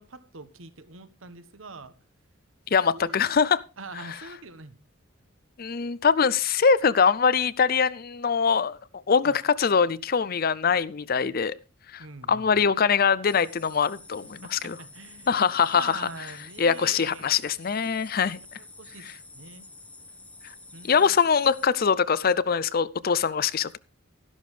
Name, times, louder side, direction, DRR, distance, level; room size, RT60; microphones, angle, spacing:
voice 1, 0.0-1.9 2.9-3.3 3.8-4.8 9.2-9.4 12.0-12.6 14.4-17.3 18.8-19.1 19.3-19.7 20.7-21.2, right 3 dB, 75° right, 1.2 m, -44 dB
voice 2, 2.7-3.6 5.6-8.8 9.1-11.5 11.9-14.8 15.3-16.1 16.6-18.4 20.8-23.8, left 6 dB, 45° left, 0.5 m, -23 dB
sound 1, 13.2-21.7, left 2 dB, 5° left, 0.9 m, -49 dB
13.0 x 11.5 x 3.3 m
head